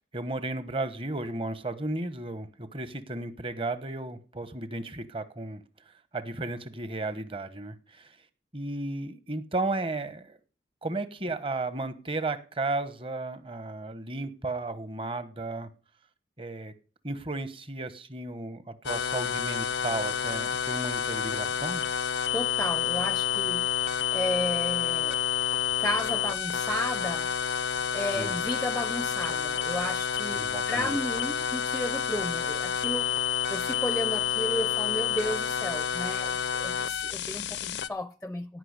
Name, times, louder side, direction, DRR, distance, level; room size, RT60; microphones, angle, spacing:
voice 1, 0.0-5.6 6.1-8.2 8.5-10.4 10.8-15.7 16.4-16.7 17.0-21.8 28.1-28.4 30.3-31.0, right 2 dB, 30° right, 1.0 m, -34 dB
sound 1, 18.8-37.9, left 8 dB, 75° left, 0.6 m, -29 dB
voice 2, 22.3-23.7 24.1-25.2 25.8-27.3 27.9-33.1 33.5-38.6, left 1 dB, 5° left, 0.5 m, -33 dB
17.0 x 5.7 x 9.5 m
head